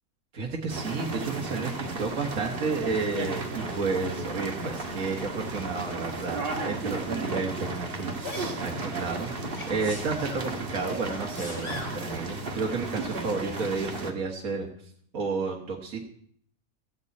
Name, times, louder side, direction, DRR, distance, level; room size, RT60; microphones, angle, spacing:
voice 1, 0.3-14.7 15.1-16.0, right 4 dB, 75° right, 0 dB, 1.9 m, -31 dB
sound 1, 0.7-14.1, right 2 dB, 45° right, 1.6 m, -34 dB
Sneeze, 8.2-8.5 9.5-10.4 11.1-12.0 13.3-13.4, left 3 dB, 50° left, 3.7 m, -40 dB
14.5 x 6.8 x 8.5 m, 0.64 s
omnidirectional pair, 1.4 m